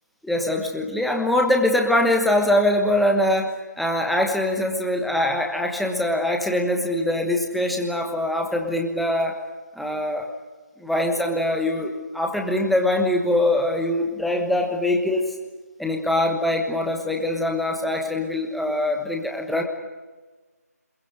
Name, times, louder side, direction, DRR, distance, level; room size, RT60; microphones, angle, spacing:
voice 1, 0.2-9.4 9.8-10.3 10.8-15.3 15.8-19.6, left 1 dB, ahead, 2 dB, 1.3 m, -23 dB
26.5 x 22.0 x 7.9 m, 1.3 s
figure-of-eight pair, 160°, 9 cm